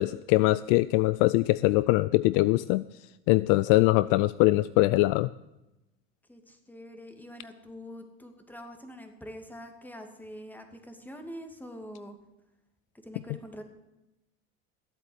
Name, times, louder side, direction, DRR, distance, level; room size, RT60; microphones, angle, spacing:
voice 1, 0.0-2.8 3.3-5.3, left 19 dB, 55° left, 18 dB, 0.5 m, -22 dB
voice 2, 6.3-12.2 13.0-13.6, equal, 5° left, 5 dB, 2.5 m, -45 dB
14.5 x 8.3 x 8.1 m, 0.96 s
hypercardioid pair, 80°, 38 cm